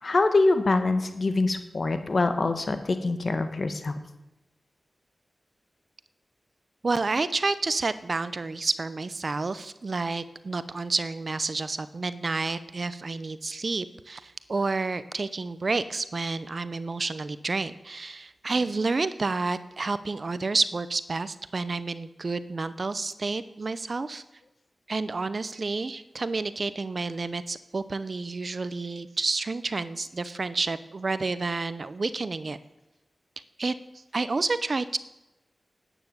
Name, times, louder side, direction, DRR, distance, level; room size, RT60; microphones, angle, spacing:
voice 1, 0.0-4.0 18.5-18.7, left 3 dB, 55° left, 9 dB, 1.5 m, -24 dB
voice 2, 6.8-24.2 24.9-32.6 33.6-33.7 34.1-35.0, right 3 dB, 55° right, 14 dB, 0.7 m, -30 dB
12.0 x 9.1 x 8.1 m, 0.98 s
cardioid pair, 60°, 0 cm